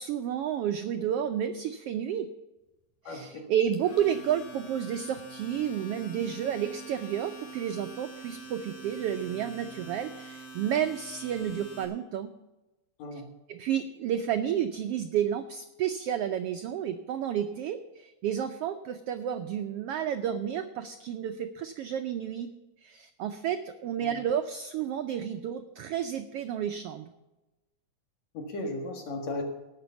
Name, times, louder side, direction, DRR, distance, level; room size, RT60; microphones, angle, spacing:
voice 1, 0.0-2.3 3.0-12.3 13.1-13.2 13.5-22.5 22.8-27.1, right 9 dB, 85° right, 8 dB, 1.3 m, -31 dB
voice 2, 3.0-3.4 13.0-13.2 24.0-24.1 28.3-29.4, left 2 dB, 65° left, 3 dB, 2.9 m, -36 dB
Domestic sounds home sounds, 3.7-11.9, right 2 dB, 80° left, 3.9 m, -45 dB
17.5 x 6.1 x 7.0 m, 1.0 s
omnidirectional pair, 3.4 m